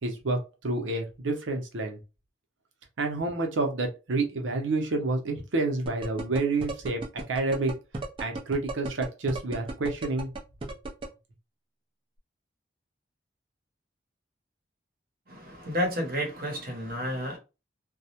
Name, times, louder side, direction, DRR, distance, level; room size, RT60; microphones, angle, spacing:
voice 1, 0.0-2.0 3.0-7.7 8.2-10.3, right 2 dB, 90° right, 0.7 m, -29 dB
sound 1, 5.9-11.1, right 2 dB, 25° right, 0.4 m, -34 dB
voice 2, 15.3-17.4, equal, 50° right, 0.8 m, -31 dB
2.3 x 2.1 x 2.8 m
head